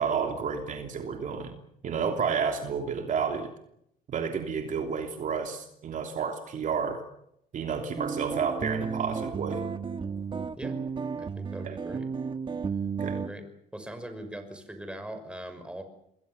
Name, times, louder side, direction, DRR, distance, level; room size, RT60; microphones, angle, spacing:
voice 1, 0.0-1.6 1.8-3.5 4.1-7.0 7.5-9.6 11.6-11.7 13.0-13.2, right 6 dB, 50° right, 4 dB, 3.1 m, -30 dB
sound 1, 8.0-13.3, right 5 dB, 30° right, 1.3 m, -33 dB
voice 2, 11.2-12.1 13.0-15.8, right 1 dB, 5° right, 7 dB, 5.8 m, -41 dB
27.5 x 22.0 x 7.1 m, 0.75 s
cardioid pair, 110°, 17 cm